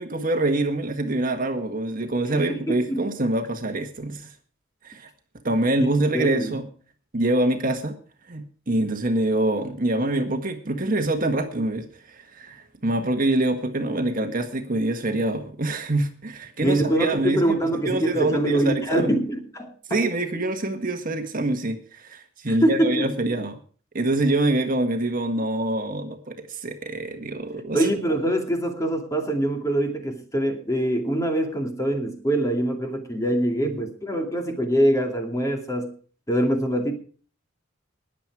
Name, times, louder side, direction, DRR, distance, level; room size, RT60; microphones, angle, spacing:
voice 1, 0.0-4.3 4.8-5.1 5.4-6.7 7.1-7.9 8.3-19.2 19.9-23.6 23.9-27.9, right 2 dB, 45° right, 1.6 m, -25 dB
voice 2, 2.3-3.1 5.8-5.9 6.1-6.5 16.6-20.0 22.5-23.1 27.7-35.9 36.3-36.9, right 1 dB, 15° left, 2.4 m, -24 dB
20.5 x 7.6 x 4.8 m
head